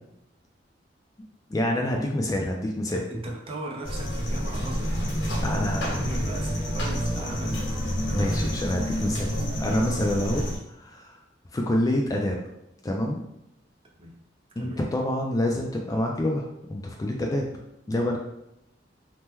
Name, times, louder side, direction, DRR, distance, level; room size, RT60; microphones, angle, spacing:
voice 1, 1.5-3.0 5.4-5.9 8.1-9.3 9.6-11.2 11.5-12.4 12.8-13.2 14.6-17.5 17.9-18.2, left 1 dB, 20° left, 1 dB, 0.3 m, -27 dB
voice 2, 3.0-5.0 5.4-7.7 14.0-14.2 14.6-14.9, right 1 dB, 30° right, -1 dB, 0.5 m, -37 dB
sound 1, 3.8-10.6, equal, 85° left, 1.1 m, -28 dB
2.9 x 2.1 x 3.5 m, 0.85 s
head